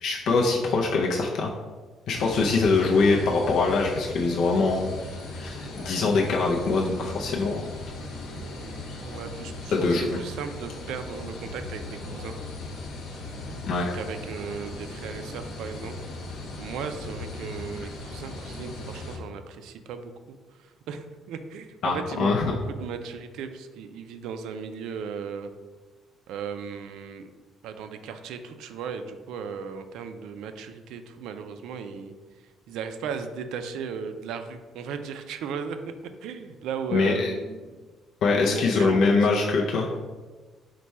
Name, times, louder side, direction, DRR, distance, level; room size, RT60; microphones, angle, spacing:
voice 1, 0.0-1.5 2.1-4.9 5.3-7.6 9.7-10.2 13.7-14.0 21.8-22.6 36.9-37.3 38.2-39.9, left 3 dB, 60° left, -2 dB, 0.4 m, -23 dB
sound 1, 2.1-19.2, left 2 dB, 75° left, 0.9 m, -38 dB
voice 2, 9.0-12.4 13.9-16.0 16.6-25.5 26.3-27.3 27.6-32.1 32.7-35.8 36.2-37.7 38.4-39.1, right 6 dB, 80° right, 8 dB, 0.3 m, -36 dB
4.5 x 2.2 x 4.1 m, 1.4 s
cardioid pair, 160°, 0 cm